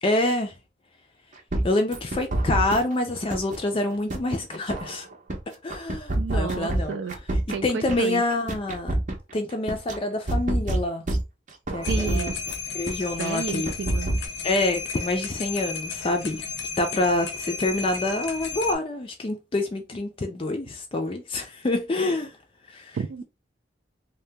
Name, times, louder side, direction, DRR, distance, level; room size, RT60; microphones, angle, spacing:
voice 1, 0.0-0.5 1.6-5.1 5.6-7.0 7.6-8.9 9.3-11.0 11.7-12.3 12.7-13.7 14.4-16.4 16.8-22.3 22.7-23.2, left 2 dB, 30° left, 0.4 m, -27 dB
sound 1, 1.5-2.9 3.3-5.4 5.7-8.0 8.3-10.0 10.3-12.5 12.9-13.0 13.3-14.3, right 1 dB, 45° right, 0.6 m, -27 dB
voice 2, 6.2-7.2 7.5-8.2 11.9-12.4 13.2-14.1 22.9-23.2, right 5 dB, 75° right, 0.3 m, -31 dB
sound 2, 11.8-18.7, left 5 dB, 75° left, 0.6 m, -34 dB
2.7 x 2.2 x 3.3 m
head